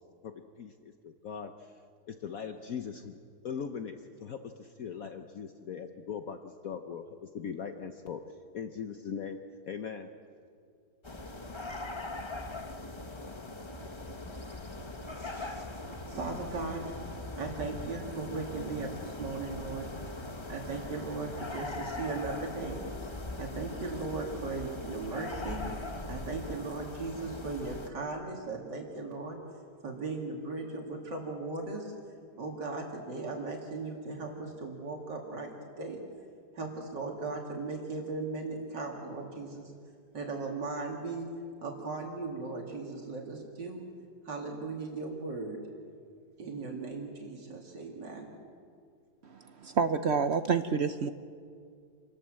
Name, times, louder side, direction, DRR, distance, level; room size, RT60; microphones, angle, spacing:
voice 1, 0.6-1.7 2.1-3.2 3.4-8.2 8.5-9.4 9.7-10.1, left 7 dB, 60° left, 6 dB, 1.3 m, -40 dB
sound 1, 11.0-27.9, left 2 dB, 20° left, 0.9 m, -40 dB
voice 2, 15.0-15.8 16.1-16.9 17.4-19.9 20.5-22.8 23.4-25.6 26.1-29.4 29.8-31.9 32.4-36.0 36.5-39.7 40.1-41.3 41.6-43.8 44.2-45.6 46.4-48.3, right 3 dB, 85° right, 0 dB, 3.0 m, -37 dB
voice 3, 49.3-51.1, right 5 dB, 60° right, 10 dB, 0.7 m, -28 dB
27.5 x 19.5 x 7.6 m, 2.3 s
omnidirectional pair, 1.8 m